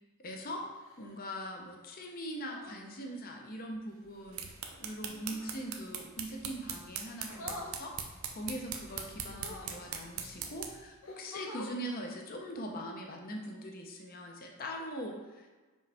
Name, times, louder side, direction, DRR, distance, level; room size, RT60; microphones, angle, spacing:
voice 1, 0.2-0.6 1.0-4.5 4.8-7.9 8.3-15.5, equal, 45° left, 1 dB, 0.8 m, -41 dB
sound 1, 0.7-1.2 2.4-2.8 5.0-5.5 7.3-7.8 9.3-9.8 10.6-10.7 11.0-11.8 13.4-13.6, left 2 dB, 65° left, 0.9 m, -46 dB
sound 2, 4.1-10.9, right 7 dB, 75° right, 0.7 m, -42 dB
5.3 x 5.1 x 3.4 m, 1.3 s
head